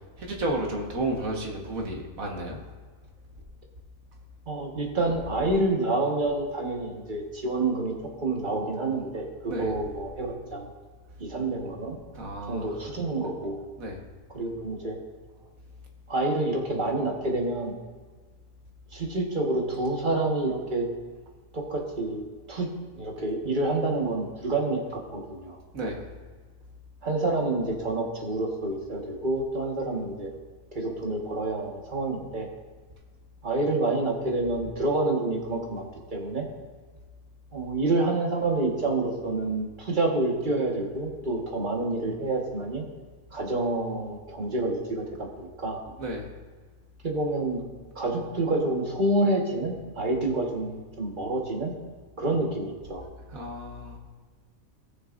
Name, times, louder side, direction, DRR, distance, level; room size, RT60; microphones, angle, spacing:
voice 1, 0.2-2.6 9.5-9.7 12.2-12.7 13.8-14.0 25.7-26.0 46.0-46.3 53.3-54.0, right 1 dB, 85° right, 1 dB, 1.9 m, -32 dB
voice 2, 4.5-10.7 11.2-12.0 12.5-13.6 14.3-15.0 16.1-17.7 18.9-20.9 21.5-22.2 22.5-22.7 22.9-25.6 27.0-30.3 30.7-32.5 33.4-36.5 37.5-42.8 43.3-45.8 47.0-47.6 47.9-51.7 52.2-53.0, right 2 dB, 35° right, 0 dB, 1.7 m, -28 dB
18.5 x 6.5 x 2.6 m, 1.5 s
omnidirectional pair, 1.4 m